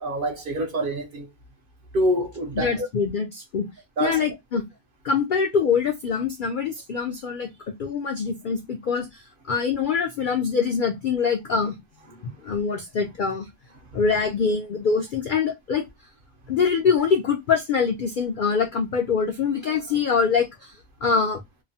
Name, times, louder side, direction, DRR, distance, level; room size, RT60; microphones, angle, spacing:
voice 1, 0.0-1.3 1.9-2.9 4.0-4.2, right 1 dB, 55° right, 0.7 m, -26 dB
voice 2, 2.6-3.7 4.0-4.6 5.0-7.5 7.8-9.2 9.5-11.8 12.2-13.5 13.9-15.8 16.5-20.7 21.0-21.4, left 5 dB, 70° left, 0.4 m, -24 dB
2.9 x 2.0 x 2.6 m
omnidirectional pair, 1.4 m